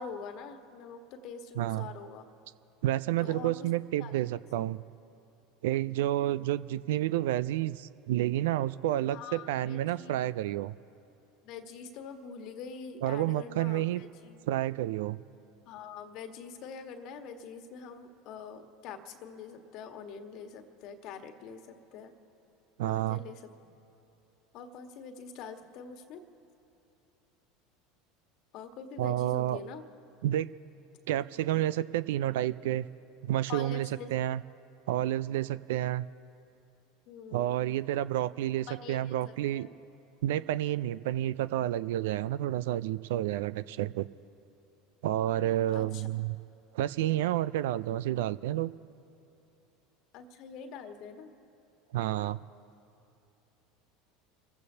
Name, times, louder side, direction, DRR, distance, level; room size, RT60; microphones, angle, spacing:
voice 1, 0.0-2.3 3.2-3.7 4.0-4.2 6.4-6.5 9.1-10.3 11.4-14.4 15.6-22.1 22.8-23.7 24.5-26.2 28.5-29.8 33.5-34.1 37.1-37.6 38.7-39.7 45.7-46.1 50.1-51.3, left 6 dB, 55° left, 7 dB, 1.4 m, -45 dB
voice 2, 1.6-1.9 2.8-4.8 5.6-10.7 13.0-14.0 14.5-15.2 22.8-23.2 29.0-29.6 30.2-30.5 31.1-32.9 33.2-34.4 34.9-36.1 37.3-39.7 40.2-44.1 45.0-46.4 46.7-48.7 51.9-52.4, right 13 dB, 70° right, 17 dB, 0.4 m, -30 dB
29.5 x 15.0 x 2.8 m, 3.0 s
hypercardioid pair, 80°, 0 cm